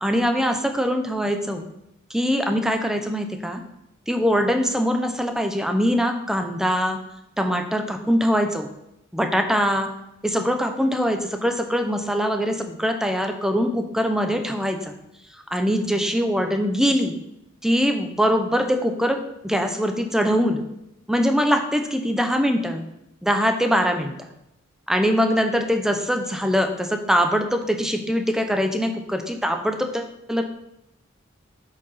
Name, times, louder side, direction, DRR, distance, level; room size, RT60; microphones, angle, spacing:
voice 1, 0.0-1.6 2.1-3.6 4.1-7.0 7.4-8.7 9.1-9.9 10.2-14.9 15.5-17.1 17.6-19.2 19.4-20.6 21.1-22.8 23.2-24.1 24.9-30.4, equal, 5° right, 4 dB, 0.8 m, -22 dB
7.7 x 4.8 x 5.6 m, 0.84 s
head